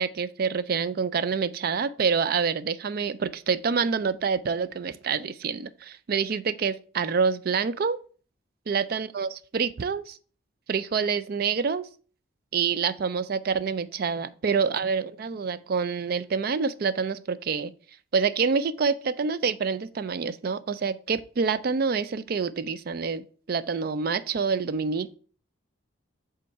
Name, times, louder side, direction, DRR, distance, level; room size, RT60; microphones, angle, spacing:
voice 1, 0.0-8.0 8.7-10.2 10.7-11.9 12.5-17.7 18.1-25.2, right 5 dB, 50° right, 0.4 m, -27 dB
5.3 x 3.7 x 5.5 m
head